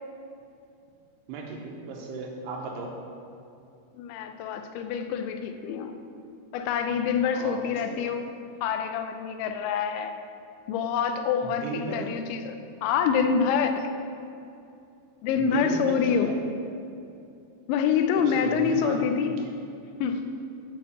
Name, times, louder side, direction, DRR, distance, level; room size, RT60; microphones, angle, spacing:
voice 1, 1.3-3.0 7.3-8.0 11.4-12.1 15.4-16.4 18.2-19.0, right 4 dB, 80° right, 0 dB, 2.7 m, -36 dB
voice 2, 3.9-5.9 6.5-8.3 8.6-10.1 10.7-12.5 12.8-13.9 15.2-16.3 17.7-19.3 20.0-20.2, left 6 dB, 90° left, 7 dB, 3.0 m, -26 dB
8.8 x 4.6 x 7.1 m, 2.6 s
omnidirectional pair, 5.2 m